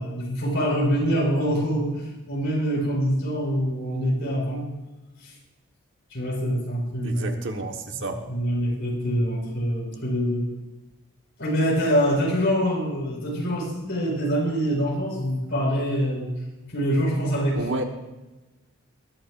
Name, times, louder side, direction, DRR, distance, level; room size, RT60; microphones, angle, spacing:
voice 1, 0.0-4.7 5.2-5.3 6.1-7.4 8.3-10.5 11.4-16.3 16.7-17.6, equal, 55° left, -3 dB, 5.0 m, -25 dB
voice 2, 7.0-8.2 17.5-17.8, right 2 dB, 55° right, 4 dB, 1.3 m, -30 dB
20.5 x 12.0 x 2.5 m, 1.1 s
head